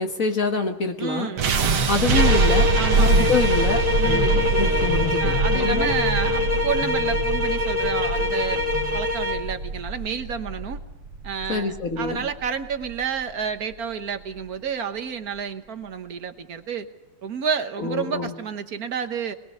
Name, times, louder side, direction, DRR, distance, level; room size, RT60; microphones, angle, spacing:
voice 1, 0.0-1.3 1.9-2.7 3.0-5.9 11.5-12.2 17.8-18.3, left 4 dB, 45° left, 4 dB, 1.8 m, -26 dB
voice 2, 1.0-1.5 2.8-3.3 4.0-4.4 5.2-8.6 8.9-10.8 11.2-16.9 17.2-19.4, right 7 dB, 50° right, 8 dB, 1.5 m, -30 dB
sound 1, 1.4-13.4, right 3 dB, 85° right, 2.3 m, -24 dB
sound 2, 2.1-9.5, left 2 dB, 25° right, 2.7 m, -24 dB
sound 3, 4.0-9.0, left 2 dB, 15° left, 2.6 m, -35 dB
25.5 x 20.5 x 6.8 m, 1.1 s
omnidirectional pair, 2.2 m